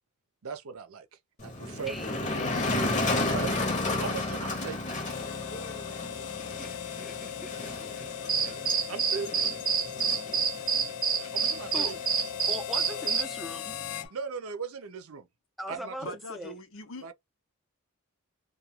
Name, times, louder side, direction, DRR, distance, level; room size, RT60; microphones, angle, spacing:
voice 1, 0.4-1.1 1.4-2.3 3.3-3.5 4.0-4.8 8.9-9.5 11.3-12.0 14.1-15.3 15.7-16.2 17.0-17.1, right 6 dB, 85° right, 0.6 m, -38 dB
Motor vehicle (road), 1.4-14.1, left 2 dB, 35° left, 0.8 m, -33 dB
voice 2, 1.9-2.8 6.2-9.2 11.7-12.0 12.5-13.8 15.6-16.5, equal, ahead, 0.5 m, -42 dB
Harmonica, 5.0-14.1, left 10 dB, 80° left, 0.3 m, -39 dB
sound 1, 8.3-13.2, right 6 dB, 40° right, 0.6 m, -27 dB
voice 3, 16.0-17.1, left 2 dB, 65° left, 0.8 m, -42 dB
2.4 x 2.3 x 2.8 m
head